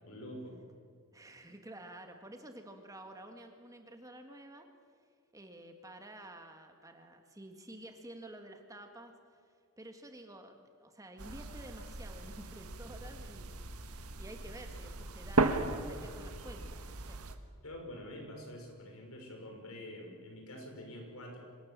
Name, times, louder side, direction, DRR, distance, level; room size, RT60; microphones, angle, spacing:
voice 1, 0.0-0.6 17.6-21.4, left 1 dB, 70° left, 2 dB, 5.6 m, -46 dB
voice 2, 1.1-4.7 5.3-9.1 9.8-13.9 14.2-17.2, right 1 dB, 15° right, 5 dB, 1.7 m, -50 dB
sound 1, 11.2-17.3, right 3 dB, 85° right, 1.5 m, -36 dB
25.5 x 19.5 x 7.4 m, 2.2 s
head